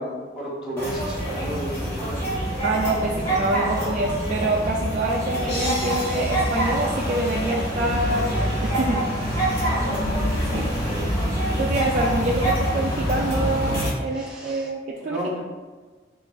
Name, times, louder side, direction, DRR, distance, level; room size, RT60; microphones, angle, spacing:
voice 1, 0.0-2.3 9.5-11.3 14.1-14.7 15.0-15.3, equal, 5° right, -6 dB, 1.0 m, -34 dB
sound 1, 0.8-13.9, right 1 dB, 15° left, 1.2 m, -25 dB
voice 2, 2.6-9.1 10.5-10.7 11.6-15.2, right 1 dB, 45° right, -2 dB, 0.3 m, -26 dB
sound 2, 5.5-7.8, left 2 dB, 75° left, 1.3 m, -36 dB
4.2 x 2.5 x 4.0 m, 1.4 s
head